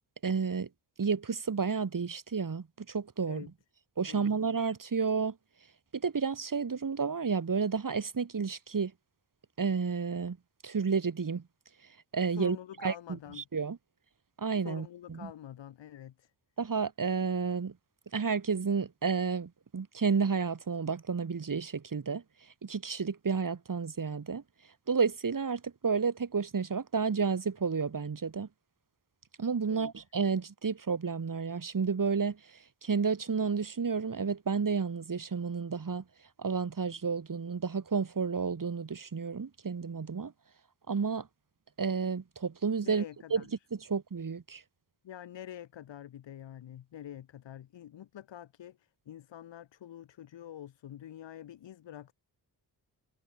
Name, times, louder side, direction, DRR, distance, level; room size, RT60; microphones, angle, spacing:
voice 1, 0.2-0.7 1.0-3.5 4.0-5.4 5.9-8.9 9.6-10.4 10.6-11.4 12.1-12.6 12.8-13.8 14.4-15.3 16.6-17.7 18.1-22.2 22.6-24.4 24.9-28.5 29.4-32.4 32.8-36.0 36.4-40.3 40.9-41.3 41.8-43.0 43.3-43.4 43.7-44.6, right 5 dB, 45° right, 5.8 m, -31 dB
voice 2, 12.3-13.4 14.6-16.3 29.7-29.9 42.8-43.5 45.0-52.1, left 11 dB, 80° left, 5.2 m, -46 dB
supercardioid pair, 55°, 43 cm